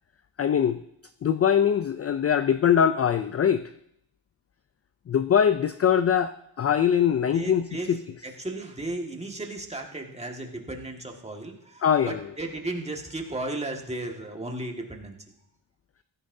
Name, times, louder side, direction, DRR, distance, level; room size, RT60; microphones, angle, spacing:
voice 1, 0.4-0.8 1.2-3.6 5.1-8.0 11.8-12.2, left 8 dB, 35° left, 12 dB, 0.4 m, -22 dB
voice 2, 7.3-8.0 8.2-15.2, right 2 dB, 15° right, 1 dB, 1.7 m, -35 dB
15.5 x 13.5 x 2.7 m, 0.74 s
cardioid pair, 105°, 45 cm